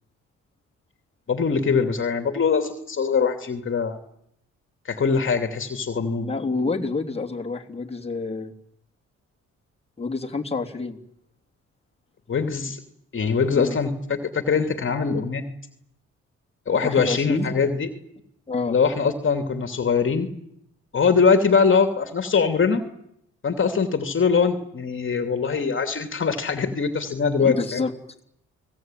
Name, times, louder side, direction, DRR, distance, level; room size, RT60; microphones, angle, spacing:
voice 1, 1.3-4.0 4.9-6.3 12.3-12.8 13.1-15.5 16.7-17.9 18.7-20.3 20.9-22.8 23.4-27.8, left 5 dB, 40° left, 6 dB, 2.7 m, -22 dB
voice 2, 6.2-8.5 10.0-11.0 13.5-13.8 16.8-17.5 18.5-18.8 27.4-27.9, left 4 dB, 20° left, -1 dB, 3.1 m, -28 dB
30.0 x 19.5 x 9.2 m, 0.76 s
cardioid pair, 90°, 30 cm